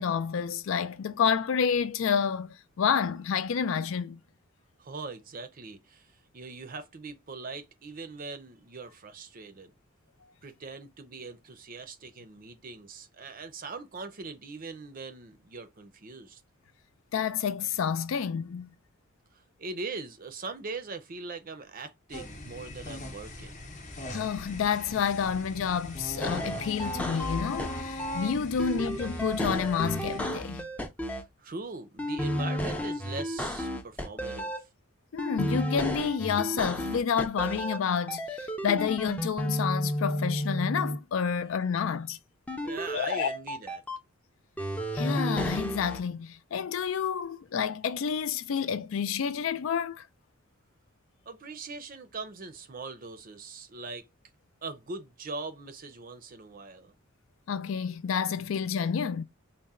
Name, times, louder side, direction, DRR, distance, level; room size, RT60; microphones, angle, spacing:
voice 1, 0.0-4.2 17.1-18.7 24.1-30.6 35.1-42.2 42.9-43.3 44.9-50.0 57.5-59.2, left 7 dB, 65° left, 0.4 m, -29 dB
voice 2, 4.8-9.7 10.4-16.4 19.6-23.6 28.6-28.7 31.4-34.7 42.6-43.8 51.3-54.0 54.6-56.9, right 3 dB, 40° right, 0.6 m, -41 dB
sound 1, 22.1-30.2, left 1 dB, 35° left, 0.8 m, -41 dB
sound 2, 26.2-28.2 28.6-31.2 32.0-34.6 35.2-37.8 38.1-41.0 42.5-44.0 44.6-46.0, equal, 5° left, 0.5 m, -32 dB
4.2 x 2.1 x 3.5 m
head